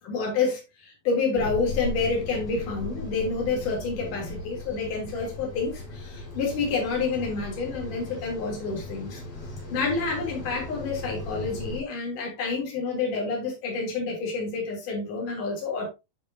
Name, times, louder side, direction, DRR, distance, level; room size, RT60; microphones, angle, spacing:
voice 1, 0.0-9.2 9.7-15.9, left 4 dB, 65° left, 4.6 m, -28 dB
sound 1, 1.4-11.8, left 2 dB, 85° left, 6.1 m, -37 dB
12.5 x 5.3 x 2.7 m
omnidirectional pair, 4.0 m